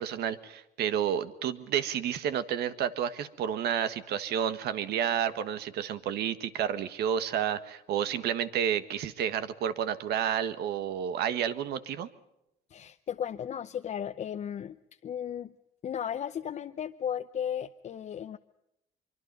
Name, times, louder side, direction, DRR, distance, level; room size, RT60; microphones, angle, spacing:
voice 1, 0.0-12.1, right 9 dB, 75° right, 11 dB, 1.6 m, -30 dB
voice 2, 12.7-14.8 15.0-15.5 15.8-18.4, left 9 dB, 45° left, 7 dB, 0.7 m, -35 dB
24.0 x 24.0 x 5.5 m, 0.85 s
cardioid pair, 110°, 17 cm